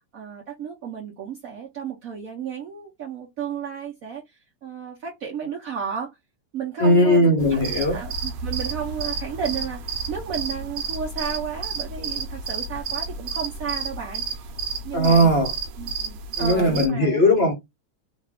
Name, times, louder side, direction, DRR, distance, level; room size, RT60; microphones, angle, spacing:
voice 1, 0.1-6.1 6.5-14.5 14.8-15.3 15.8-17.2, right 7 dB, 60° right, 1.0 m, -33 dB
voice 2, 6.8-8.0 14.9-15.5 16.4-17.5, equal, 50° left, 0.8 m, -18 dB
sound 1, 7.4-16.9, right 5 dB, 85° right, 1.3 m, -31 dB
3.1 x 2.3 x 3.4 m
omnidirectional pair, 2.0 m